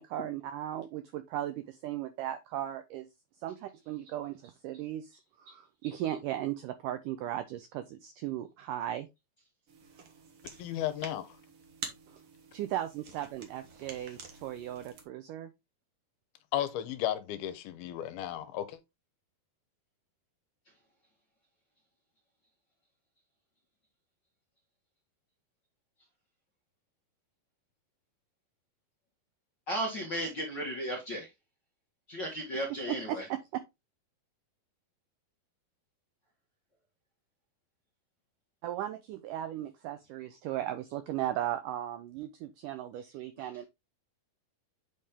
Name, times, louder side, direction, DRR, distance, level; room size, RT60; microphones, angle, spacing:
voice 1, 0.0-3.1 3.4-9.1 12.1-12.2 12.5-15.5 32.9-33.6 38.6-43.7, right 12 dB, 85° right, 1.8 m, -37 dB
sound 1, 9.7-15.1, right 5 dB, 60° right, 1.6 m, -48 dB
voice 2, 10.6-11.4 16.5-18.8, left 12 dB, 80° left, 2.6 m, -34 dB
voice 3, 29.7-31.3 32.1-33.3 43.4-43.5, equal, 55° left, 1.2 m, -35 dB
8.4 x 4.3 x 3.6 m
omnidirectional pair, 4.5 m